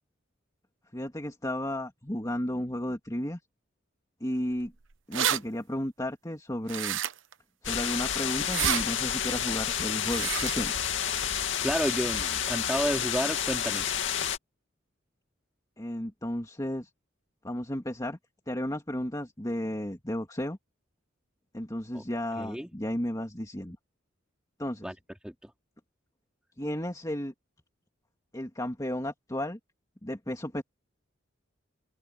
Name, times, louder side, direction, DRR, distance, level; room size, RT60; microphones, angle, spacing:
voice 1, 0.9-3.4 4.2-4.7 5.1-7.0 7.6-10.7 15.8-16.9 17.4-18.2 18.5-20.6 21.5-23.8 24.6-24.9 26.6-27.3 28.3-29.6 30.0-30.6, left 1 dB, 20° left, 2.6 m, -33 dB
sound 1, 4.7-4.8 4.9-5.4 6.7-7.3 8.4-8.8 10.0-10.6, right 10 dB, 70° right, 0.9 m, -29 dB
sound 2, 7.6-14.4, left 8 dB, 70° left, 2.5 m, -30 dB
voice 2, 11.3-13.8 21.9-22.0 22.4-22.7 24.8-24.9 25.2-25.3, equal, 5° right, 2.7 m, -31 dB
open air
head